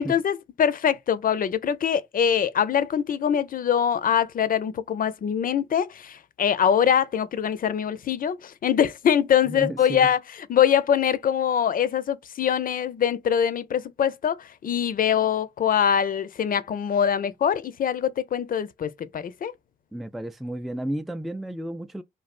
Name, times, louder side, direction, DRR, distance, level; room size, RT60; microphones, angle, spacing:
voice 1, 0.0-10.2 10.5-19.5, left 8 dB, 55° left, 0.5 m, -23 dB
voice 2, 9.4-10.1 19.9-22.0, right 1 dB, ahead, 0.3 m, -32 dB
3.2 x 2.3 x 2.4 m
supercardioid pair, 45°, 17 cm